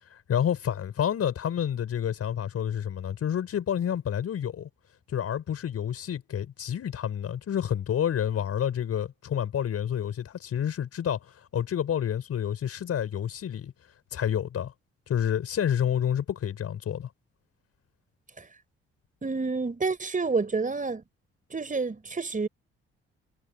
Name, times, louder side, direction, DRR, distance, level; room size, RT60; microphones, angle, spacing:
voice 1, 0.1-4.7 5.1-13.7 14.1-14.7 15.1-17.1, left 9 dB, 55° left, 5.6 m, -29 dB
voice 2, 19.2-21.0 21.5-22.5, right 4 dB, 25° right, 5.2 m, -29 dB
hypercardioid pair, 45°, 29 cm